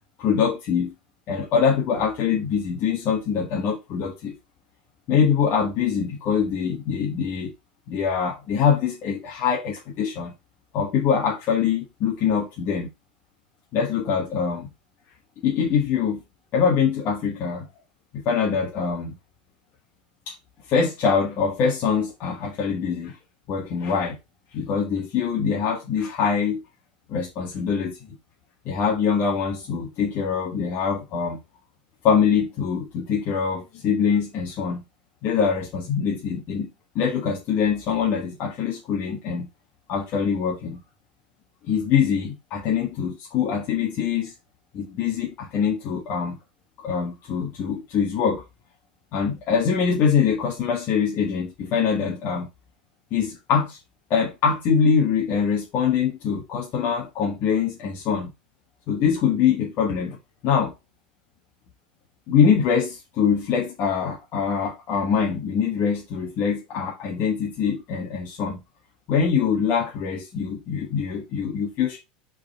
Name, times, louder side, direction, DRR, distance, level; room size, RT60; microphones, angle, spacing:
voice 1, 0.2-0.9 1.3-4.3 5.1-7.5 7.9-10.3 10.7-12.9 13.7-14.7 15.4-16.2 16.5-17.7 18.1-19.2 20.3-20.4 20.7-23.2 23.5-24.2 24.5-26.6 27.1-28.0 28.7-31.4 32.0-34.8 35.2-36.7 37.0-39.5 39.9-40.8 41.7-44.3 44.7-46.4 46.8-48.4 49.1-52.5 53.1-53.8 54.1-58.3 58.9-60.2 60.4-60.7 62.3-68.6 69.1-72.0, left 6 dB, 45° left, 1.8 m, -23 dB
5.4 x 4.7 x 4.6 m
hypercardioid pair, 95°, 5 cm